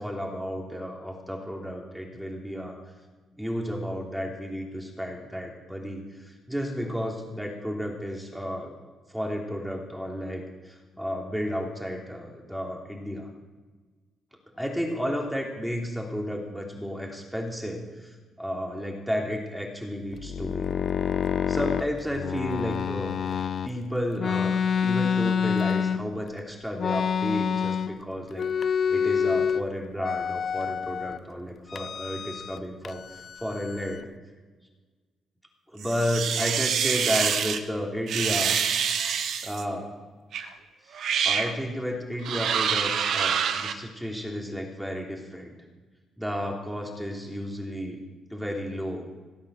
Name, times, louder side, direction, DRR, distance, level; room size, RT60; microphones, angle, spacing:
voice 1, 0.0-2.8 3.4-8.7 9.1-13.3 14.5-20.7 21.5-23.2 23.6-28.5 28.9-34.1 35.7-38.6 39.4-39.9 40.9-45.5 46.2-48.0 48.3-49.1, equal, 5° right, 0 dB, 3.2 m, -32 dB
sound 1, 20.1-23.7 24.2-26.3 26.8-28.0 28.3-29.6 30.0-31.2 31.7-32.6 32.8-34.0, left 7 dB, 50° left, 0.5 m, -27 dB
sound 2, 35.8-37.6 38.1-39.6 40.3-40.5 40.9-41.5 42.2-43.7, right 7 dB, 70° right, 1.1 m, -26 dB
17.5 x 8.7 x 6.5 m, 1.3 s
cardioid pair, 90°, 0 cm